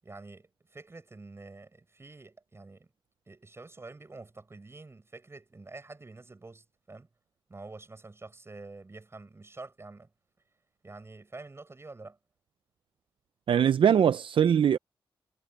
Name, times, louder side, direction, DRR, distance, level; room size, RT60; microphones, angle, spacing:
voice 1, 0.0-2.9 3.3-7.1 7.5-10.1 10.8-12.2, right 3 dB, 30° right, 7.5 m, -47 dB
voice 2, 13.5-14.8, right 8 dB, 70° right, 0.5 m, -22 dB
cardioid pair, 95°, 9 cm